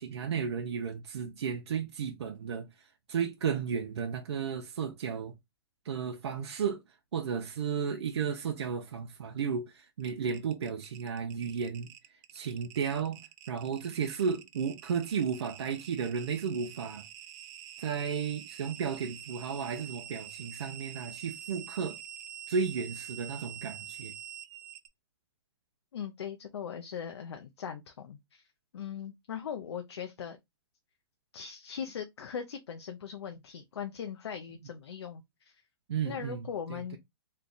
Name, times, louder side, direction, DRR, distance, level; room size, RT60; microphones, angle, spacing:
voice 1, 0.0-2.7 3.1-5.3 5.9-6.8 7.1-11.9 12.3-13.2 13.5-17.0 17.8-22.0 22.5-24.1 35.9-37.0, right 6 dB, 90° right, 0.6 m, -33 dB
sound 1, 10.0-24.9, right 11 dB, 35° right, 0.5 m, -46 dB
voice 2, 25.9-28.4 28.7-30.4 31.3-35.6 36.0-37.0, left 7 dB, 90° left, 0.6 m, -40 dB
3.2 x 2.2 x 3.9 m
hypercardioid pair, 145°, 14 cm